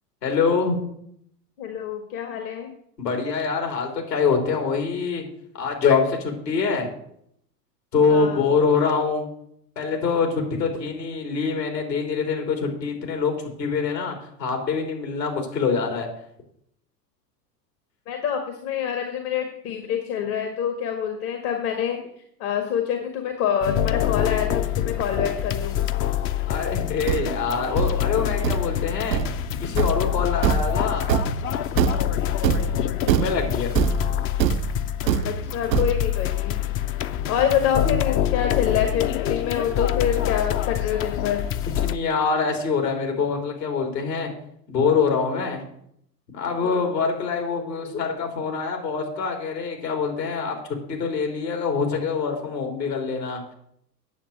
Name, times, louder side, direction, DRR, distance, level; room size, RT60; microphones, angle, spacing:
voice 1, 0.2-0.8 3.0-5.2 5.6-6.9 7.9-9.3 9.8-16.1 26.5-29.2 29.6-31.1 33.1-33.8 41.8-44.3 44.7-45.7 46.3-50.6 50.9-53.4, left 5 dB, 75° left, 3 dB, 3.5 m, -24 dB
voice 2, 1.6-2.7 8.1-8.4 18.1-22.0 22.4-25.8 35.3-36.7 37.3-41.5 46.5-46.8, left 8 dB, 60° left, 5 dB, 1.8 m, -26 dB
sound 1, 23.6-42.0, left 11 dB, 30° left, 0.5 m, -26 dB
Thump thud, 26.7-36.3, right 11 dB, 80° right, 0.6 m, -25 dB
9.2 x 7.3 x 7.8 m, 0.71 s
figure-of-eight pair, 85°, 50 cm